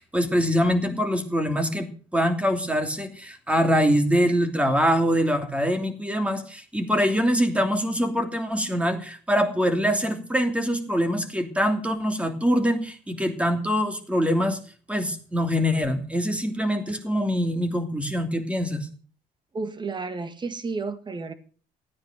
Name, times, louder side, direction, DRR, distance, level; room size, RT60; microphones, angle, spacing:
voice 1, 0.0-14.6 14.9-18.9, equal, 5° right, 7 dB, 2.9 m, -24 dB
voice 2, 19.5-21.3, right 4 dB, 25° right, 11 dB, 1.9 m, -31 dB
14.5 x 9.4 x 6.7 m, 0.41 s
cardioid pair, 110°, 17 cm